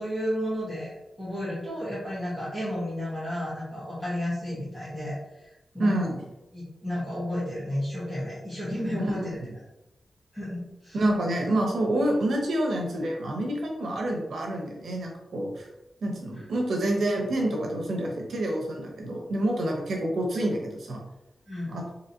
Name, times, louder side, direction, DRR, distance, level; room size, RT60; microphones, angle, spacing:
voice 1, 0.0-5.5 5.7-5.9 6.5-9.4 10.3-11.0 16.3-16.4 21.5-21.7, equal, 10° left, -11 dB, 1.2 m, -32 dB
voice 2, 5.8-6.2 9.1-9.3 10.9-15.7 16.0-21.0 21.7-21.8, right 1 dB, 70° right, 0 dB, 0.9 m, -27 dB
4.1 x 2.8 x 2.8 m, 0.94 s
wide cardioid pair, 165°, 0 cm